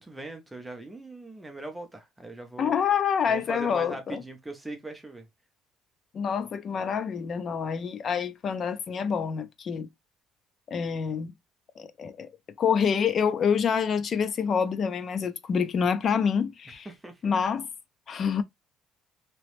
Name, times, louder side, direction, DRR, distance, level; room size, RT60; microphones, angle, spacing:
voice 1, 0.0-2.7 3.3-5.3 16.9-17.3, right 2 dB, 5° right, 0.7 m, -40 dB
voice 2, 2.6-4.2 6.1-9.9 10.7-11.3 11.8-12.3 12.6-16.9 17.2-17.7 18.1-18.4, left 6 dB, 35° left, 0.4 m, -27 dB
3.0 x 2.9 x 3.0 m
cardioid pair, 165°, 0 cm